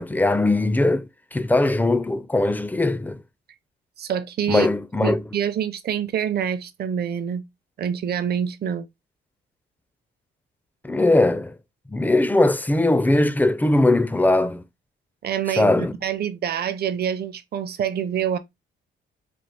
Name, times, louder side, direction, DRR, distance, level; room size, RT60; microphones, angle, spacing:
voice 1, 0.0-3.2 4.5-5.2 10.8-11.5 11.9-14.6 15.6-15.9, left 2 dB, 10° left, 0.4 m, -20 dB
voice 2, 4.0-4.7 5.0-7.4 7.8-8.8 15.2-18.4, right 8 dB, 55° right, 0.6 m, -26 dB
4.3 x 2.4 x 3.3 m
cardioid pair, 90°, 20 cm